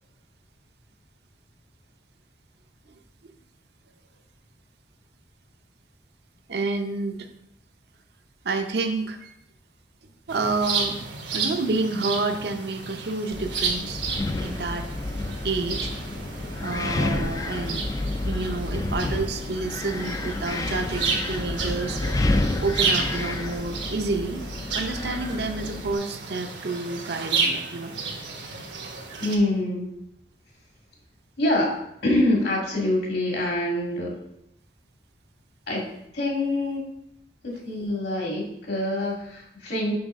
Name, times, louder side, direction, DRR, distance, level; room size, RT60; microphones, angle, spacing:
voice 1, 6.5-7.3 8.4-9.3 10.3-11.0 11.3-14.0 14.4-14.9 15.4-15.9 16.6-17.9 18.3-22.0 22.6-24.4 24.7-27.9, right 3 dB, 65° right, 5 dB, 0.7 m, -29 dB
sound 1, 10.3-29.4, right 4 dB, 85° right, 1.2 m, -32 dB
Wind, 13.3-25.9, left 2 dB, 20° left, 0.3 m, -30 dB
voice 2, 29.2-29.9 31.4-34.1 35.7-35.8 36.1-36.8 37.4-39.9, left 1 dB, 65° left, -2 dB, 2.1 m, -25 dB
6.1 x 5.7 x 3.6 m, 0.79 s
head